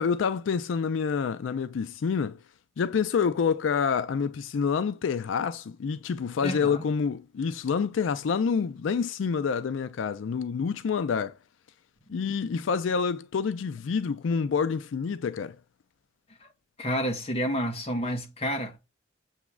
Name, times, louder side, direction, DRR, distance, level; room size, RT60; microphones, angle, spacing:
voice 1, 0.0-2.4 2.8-11.4 12.1-15.6, left 6 dB, 90° left, 0.4 m, -27 dB
voice 2, 6.4-6.8 16.4-16.5 16.8-18.8, equal, 30° left, 1.1 m, -30 dB
7.2 x 3.0 x 2.2 m
head